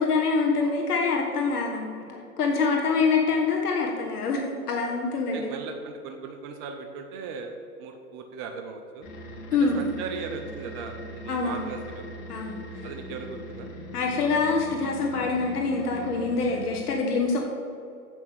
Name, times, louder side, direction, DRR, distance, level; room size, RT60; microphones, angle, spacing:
voice 1, 0.0-5.5 9.5-9.8 11.3-11.6 12.3-12.9 13.9-17.5, left 4 dB, 80° left, 0 dB, 1.6 m, -25 dB
voice 2, 5.3-9.1 9.6-12.0 12.8-13.7, right 5 dB, 20° right, 4 dB, 0.3 m, -38 dB
sound 1, 9.0-16.8, equal, 60° left, 2.1 m, -40 dB
7.8 x 6.1 x 7.8 m, 2.6 s
hypercardioid pair, 120°, 45 cm